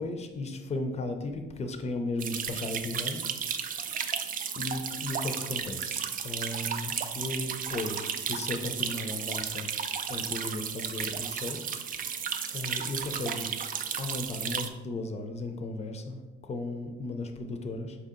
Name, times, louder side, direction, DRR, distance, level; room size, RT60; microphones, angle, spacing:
voice 1, 0.0-3.2 4.6-9.7 10.1-11.6 12.5-13.5 14.0-16.2 16.5-18.0, left 2 dB, 35° left, 6 dB, 0.5 m, -35 dB
sound 1, 2.2-14.7, right 7 dB, 45° right, 0.4 m, -34 dB
4.6 x 2.8 x 3.7 m, 1.2 s
cardioid pair, 90°, 20 cm